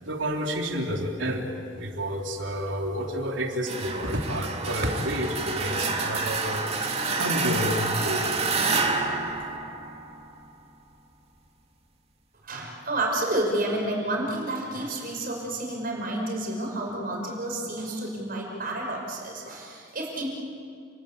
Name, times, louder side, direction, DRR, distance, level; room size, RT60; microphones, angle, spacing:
voice 1, 0.0-1.5 1.8-6.6 7.2-8.4, equal, 85° right, 2 dB, 3.6 m, -29 dB
sound 1, 3.7-10.4, right 4 dB, 35° right, 2.7 m, -28 dB
voice 2, 12.4-20.3, right 1 dB, 50° right, 0 dB, 5.9 m, -30 dB
30.0 x 21.5 x 8.6 m, 2.3 s
head